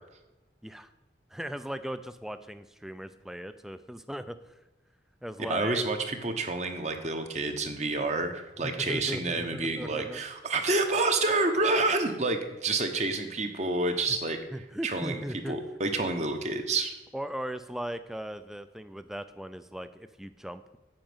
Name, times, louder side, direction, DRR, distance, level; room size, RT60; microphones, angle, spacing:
voice 1, 1.3-4.5 5.2-5.8 8.6-10.2 14.5-15.6 17.1-20.8, equal, ahead, 12 dB, 0.4 m, -38 dB
voice 2, 5.5-14.4 14.8-15.2 15.5-16.9, right 3 dB, 40° right, 6 dB, 1.0 m, -28 dB
8.8 x 5.3 x 7.8 m, 1.1 s
head